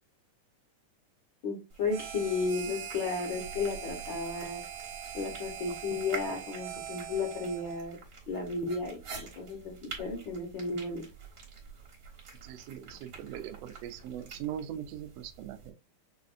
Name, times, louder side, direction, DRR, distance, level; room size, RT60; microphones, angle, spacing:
voice 1, 1.4-4.6 5.1-8.0 8.3-11.0, left 4 dB, 60° left, 1.3 m, -34 dB
sound 1, 1.7-15.7, right 5 dB, 50° right, 1.1 m, -48 dB
Harmonica, 1.9-7.9, right 9 dB, 70° right, 2.0 m, -42 dB
voice 2, 12.4-15.7, right 10 dB, 85° right, 1.4 m, -40 dB
5.8 x 2.5 x 2.5 m
omnidirectional pair, 3.6 m